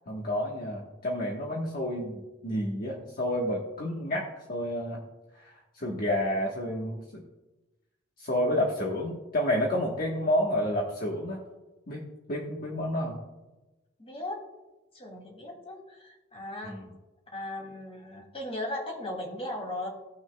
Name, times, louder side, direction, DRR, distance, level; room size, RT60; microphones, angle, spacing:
voice 1, 0.1-5.0 5.4-7.2 8.2-11.4 11.9-13.2 16.6-16.8, left 1 dB, 50° left, -3 dB, 1.3 m, -30 dB
voice 2, 14.0-14.4 14.9-16.8 17.3-19.9, left 1 dB, 30° left, -1 dB, 2.7 m, -37 dB
18.0 x 6.2 x 2.3 m, 1.1 s
head